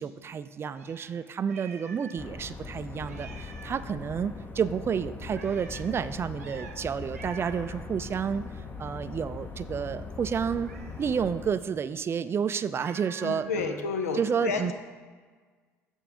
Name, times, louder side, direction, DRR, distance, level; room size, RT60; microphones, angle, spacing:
voice 1, 0.0-8.4 8.8-10.7 11.0-13.8 14.1-14.7, right 7 dB, 30° right, 13 dB, 0.3 m, -30 dB
Meow, 0.7-2.2 2.5-2.6 3.0-3.9 5.3-5.9 6.4-6.8 7.1-7.7 10.6-11.2 12.8-13.5, right 5 dB, 85° right, 0.6 m, -47 dB
sound 1, 2.2-11.5, left 4 dB, 25° left, 0.8 m, -40 dB
voice 2, 13.2-14.7, left 5 dB, 80° left, 6 dB, 0.6 m, -31 dB
7.8 x 4.5 x 4.9 m, 1.5 s
figure-of-eight pair, 55°, 8 cm